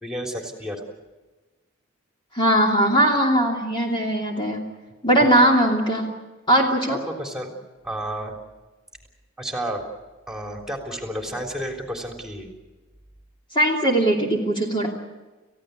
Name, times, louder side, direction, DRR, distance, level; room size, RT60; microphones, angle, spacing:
voice 1, 0.0-0.8 6.9-7.5 7.8-8.3 9.4-9.8 10.3-12.5, right 1 dB, 5° right, 2 dB, 3.6 m, -31 dB
voice 2, 2.3-4.6 5.0-6.0 6.5-7.0 13.5-14.9, right 1 dB, 25° left, 0 dB, 2.9 m, -19 dB
30.0 x 16.0 x 8.3 m, 1.2 s
head